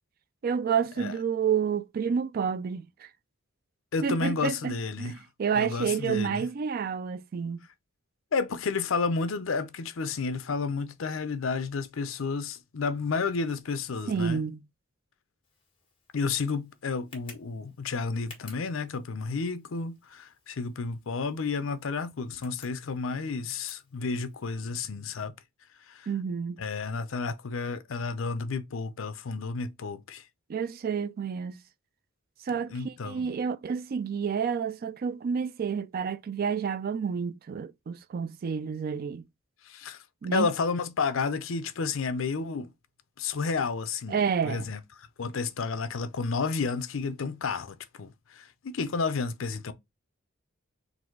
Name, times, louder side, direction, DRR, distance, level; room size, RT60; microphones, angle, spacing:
voice 1, 0.4-3.1 4.0-7.6 14.1-14.6 26.1-26.6 30.5-31.6 32.4-39.2 40.2-40.5 44.1-44.7, right 6 dB, 45° right, 0.3 m, -29 dB
voice 2, 3.9-5.2 5.5-6.5 8.3-14.4 16.1-25.3 25.9-26.1 26.6-30.3 32.7-33.3 39.6-40.0 40.3-42.7 43.2-44.2 44.4-49.7, left 4 dB, 70° left, 0.6 m, -31 dB
Tick, 15.4-24.6, left 4 dB, 25° left, 1.6 m, -56 dB
4.0 x 2.6 x 4.5 m
head